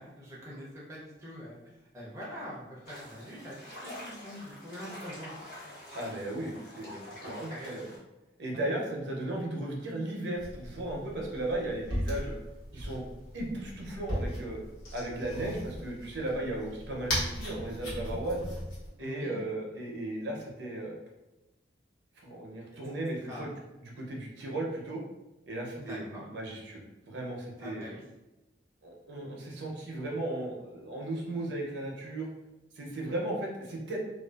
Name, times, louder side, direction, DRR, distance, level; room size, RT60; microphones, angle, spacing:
voice 1, 0.0-5.3 5.6-5.7 7.2-7.7 8.5-8.7 19.0-19.4 23.3-23.5 25.8-26.2 27.6-28.0, equal, 15° right, -5 dB, 0.5 m, -44 dB
sound 1, 2.9-8.0, left 1 dB, 55° left, 1.0 m, -46 dB
voice 2, 5.9-7.9 8.4-12.3 12.7-13.0 13.3-14.6 14.9-18.5 19.0-20.9 22.2-23.5 23.8-25.0 25.5-27.9 28.8-32.3 32.7-34.0, right 1 dB, 60° right, -1 dB, 0.6 m, -36 dB
sound 2, 10.4-18.9, equal, 85° left, 1.1 m, -38 dB
2.4 x 2.3 x 2.3 m, 1.0 s
head